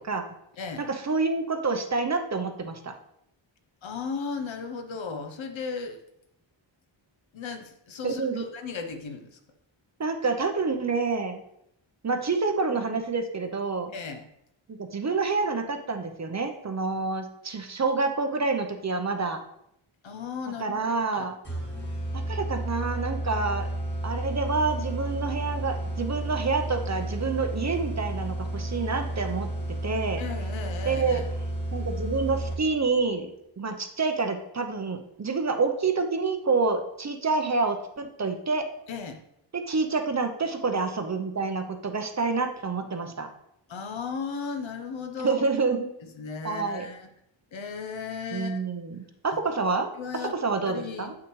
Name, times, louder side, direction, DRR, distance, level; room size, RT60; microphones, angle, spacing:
voice 1, 0.8-2.9 8.0-8.4 10.0-11.4 12.0-13.9 14.7-19.4 20.6-21.4 22.1-23.7 24.0-29.5 29.8-30.2 30.9-31.2 31.7-33.3 33.6-38.7 39.5-43.3 45.2-45.9 46.4-46.9 48.3-49.9 50.1-51.1, right 4 dB, 35° right, 6 dB, 0.7 m, -28 dB
voice 2, 3.8-6.0 7.3-9.4 13.9-14.2 20.0-21.3 30.2-31.3 38.9-39.2 43.7-45.4 46.0-47.1 47.5-48.6 50.0-50.3 50.7-51.1, left 5 dB, 70° left, 6 dB, 0.9 m, -36 dB
sound 1, 21.4-32.8, right 1 dB, 20° left, 1.6 m, -32 dB
7.7 x 6.0 x 3.1 m, 0.77 s
wide cardioid pair, 125°, 48 cm